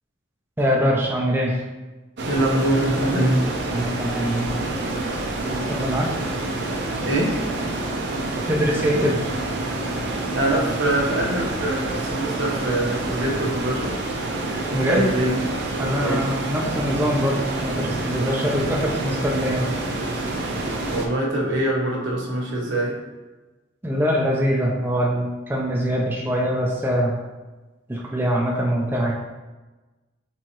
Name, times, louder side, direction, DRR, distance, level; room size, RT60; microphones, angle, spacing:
voice 1, 0.6-1.6 3.7-4.6 5.4-6.1 8.5-9.2 14.7-15.1 15.8-19.7 23.8-27.2 27.9-29.1, equal, 10° right, -3 dB, 0.4 m, -23 dB
sound 1, 2.2-21.1, right 2 dB, 60° right, 0.6 m, -27 dB
voice 2, 2.2-3.5 6.0-6.1 7.0-7.4 10.3-14.0 14.7-15.4 16.0-16.3 20.9-23.0, right 1 dB, 75° right, -4 dB, 1.1 m, -23 dB
4.5 x 3.6 x 3.0 m, 1.2 s
head